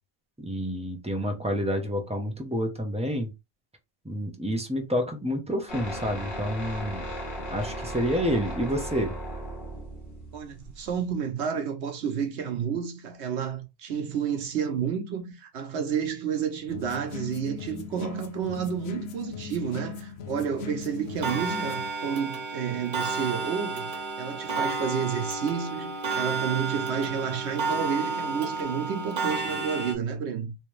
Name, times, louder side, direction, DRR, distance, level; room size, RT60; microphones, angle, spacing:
voice 1, 0.4-3.3 4.0-7.1 7.5-9.1, equal, 5° right, 0.6 m, -29 dB
sound 1, 5.7-11.1, right 1 dB, 50° left, 1.5 m, -36 dB
voice 2, 10.3-30.6, right 7 dB, 80° right, 1.1 m, -30 dB
sound 2, 16.7-21.9, left 6 dB, 75° left, 0.8 m, -39 dB
Clock, 21.2-29.9, right 4 dB, 55° right, 0.8 m, -31 dB
3.3 x 2.8 x 3.1 m
omnidirectional pair, 1.1 m